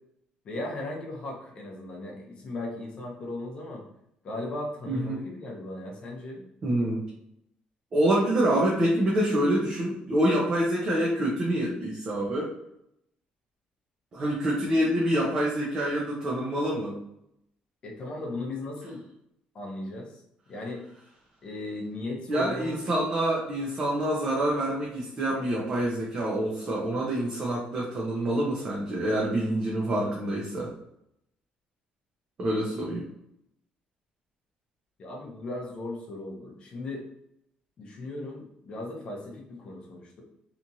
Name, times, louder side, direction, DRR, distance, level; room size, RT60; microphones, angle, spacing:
voice 1, 0.4-3.8 4.2-6.4 17.8-19.0 19.5-20.2 20.5-20.9 21.4-23.0 35.0-37.1 37.8-40.2, left 2 dB, 35° left, 0 dB, 0.6 m, -37 dB
voice 2, 4.9-5.2 6.6-7.0 7.9-12.5 14.1-17.0 22.3-30.7 32.4-33.0, right 1 dB, 30° right, -4 dB, 0.5 m, -26 dB
2.9 x 2.4 x 2.6 m, 0.77 s
cardioid pair, 180°, 3 cm